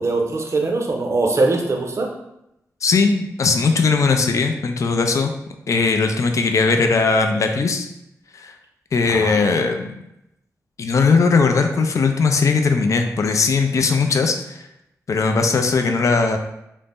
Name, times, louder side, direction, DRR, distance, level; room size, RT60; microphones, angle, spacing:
voice 1, 0.0-2.1 9.1-9.6, right 3 dB, 45° right, 2 dB, 0.6 m, -22 dB
voice 2, 2.8-5.3 5.7-7.9 8.3-8.5 8.9-9.9 10.8-14.7 15.1-16.4, left 4 dB, 55° left, 5 dB, 0.3 m, -19 dB
2.5 x 2.0 x 3.4 m, 0.84 s
cardioid pair, 65°, 6 cm